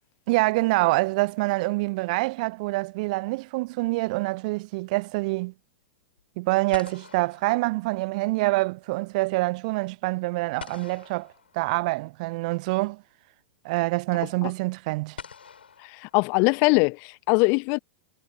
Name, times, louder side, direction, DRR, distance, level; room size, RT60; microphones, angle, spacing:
voice 1, 0.3-5.5 6.4-13.0 13.6-15.2, right 23 dB, 45° right, 0.4 m, -26 dB
sound 1, 1.2-2.1 6.2-6.3 6.7-8.4 10.6-12.2 13.5-13.6 15.2-16.8, left 6 dB, 75° left, 5.7 m, -47 dB
voice 2, 15.8-17.8, left 35 dB, 40° left, 0.3 m, -22 dB
figure-of-eight pair, 95°, 6 cm